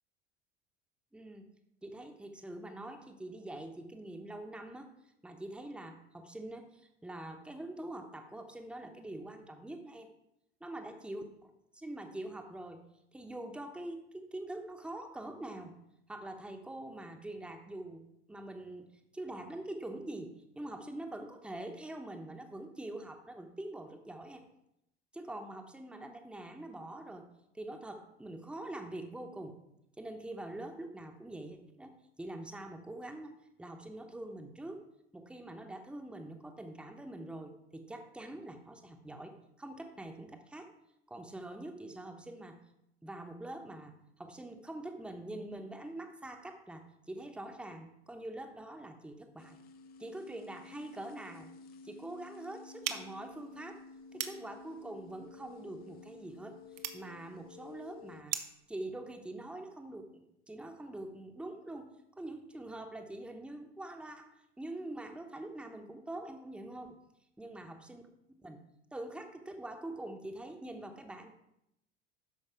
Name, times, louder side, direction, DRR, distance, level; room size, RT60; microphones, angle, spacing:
voice 1, 1.1-1.5 1.8-4.9 5.2-10.1 10.6-12.8 13.1-15.8 16.1-18.9 19.1-24.4 25.1-27.3 27.5-29.6 30.0-31.9 32.2-34.8 35.1-40.7 41.1-42.6 43.0-49.6 50.0-51.5 51.8-53.8 54.1-56.6 56.9-58.4 58.7-61.9 62.2-67.0 67.4-68.0 68.3-68.6 68.9-71.3, right 1 dB, 5° right, 4 dB, 1.0 m, -44 dB
sound 1, 49.4-58.2, left 4 dB, 25° left, 0.6 m, -53 dB
sound 2, 52.8-58.7, right 10 dB, 55° right, 0.9 m, -43 dB
13.0 x 5.2 x 4.7 m, 0.84 s
figure-of-eight pair, 75°, 34 cm